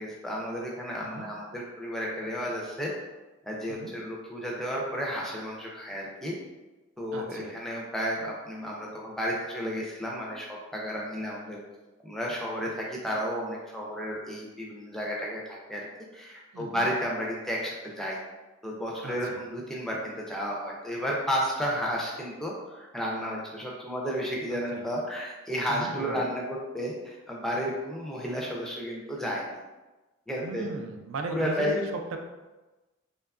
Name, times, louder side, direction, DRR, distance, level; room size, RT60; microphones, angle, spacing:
voice 1, 0.0-2.9 3.4-6.3 7.0-11.6 12.0-15.9 16.1-18.2 18.6-29.6 30.3-30.7 31.3-31.8, equal, ahead, -3 dB, 0.3 m, -32 dB
voice 2, 7.1-7.5 16.5-16.9 19.0-19.4 24.5-24.8 25.7-26.2 30.4-31.9, right 2 dB, 80° right, 4 dB, 0.3 m, -37 dB
2.8 x 2.3 x 2.3 m, 1.1 s
head